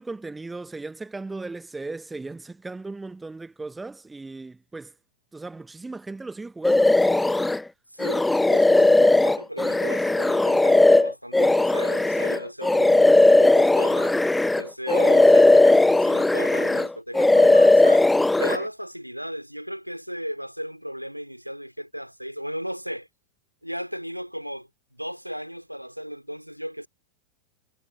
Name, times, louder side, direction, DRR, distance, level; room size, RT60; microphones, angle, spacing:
voice 1, 0.0-4.9 5.3-7.6, right 3 dB, 10° right, 1.2 m, -37 dB
sound 1, 6.6-7.6 8.0-14.6 14.9-16.9 17.1-18.6, left 2 dB, 5° left, 0.3 m, -18 dB
voice 2, 7.9-14.2 14.6-18.1 18.4-23.1 23.6-26.9, equal, 90° right, 3.0 m, -36 dB
figure-of-eight pair, 90°, 0 cm